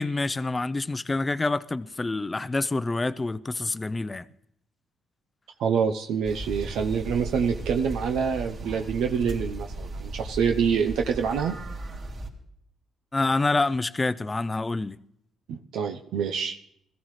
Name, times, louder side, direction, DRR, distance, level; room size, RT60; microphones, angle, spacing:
voice 1, 0.0-4.2 13.1-15.0, left 3 dB, 20° left, 0.5 m, -27 dB
voice 2, 5.6-11.5 15.5-16.6, right 6 dB, 85° right, 0.7 m, -26 dB
sound 1, 6.2-12.3, right 2 dB, 60° right, 3.0 m, -36 dB
21.5 x 14.5 x 3.2 m
cardioid pair, 90°, 0 cm